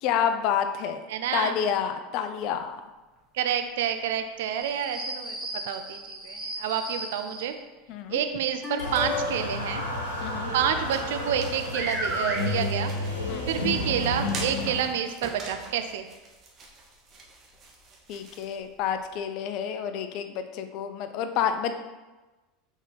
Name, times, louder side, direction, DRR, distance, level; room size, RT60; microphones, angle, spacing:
voice 1, 0.0-1.0 1.3-2.8 7.9-8.2 10.2-10.5 13.3-13.5 18.1-21.8, left 8 dB, 50° left, 8 dB, 0.5 m, -29 dB
voice 2, 1.1-1.5 3.3-5.4 5.6-7.5 8.1-9.8 10.5-13.1 13.5-16.0, right 9 dB, 60° right, 7 dB, 0.5 m, -29 dB
sound 1, 4.5-7.5 8.6-9.6 11.3-11.4 11.7-12.4 13.6-13.7 14.2-14.3 15.1-15.2, equal, 15° right, 1.6 m, -33 dB
sound 2, 8.8-14.8, left 2 dB, 85° left, 1.1 m, -31 dB
sound 3, 10.2-19.2, right 3 dB, 35° right, 1.1 m, -45 dB
6.1 x 4.0 x 3.9 m, 1.2 s
figure-of-eight pair, 75°, 0 cm